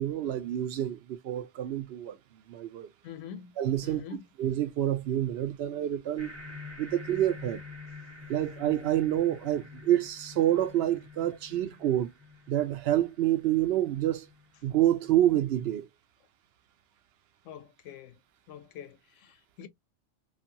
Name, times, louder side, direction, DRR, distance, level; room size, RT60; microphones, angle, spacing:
voice 1, 0.0-2.2 2.5-2.9 3.6-4.0 4.4-6.3 6.8-7.6 8.3-12.1 12.5-14.3 14.6-15.9, right 12 dB, 65° right, 0.7 m, -27 dB
voice 2, 3.0-3.5 3.8-4.2 17.5-18.1 18.5-19.7, left 8 dB, 90° left, 0.9 m, -45 dB
sound 1, 6.2-15.1, left 4 dB, 15° right, 0.8 m, -47 dB
2.7 x 2.5 x 2.6 m
omnidirectional pair, 1.2 m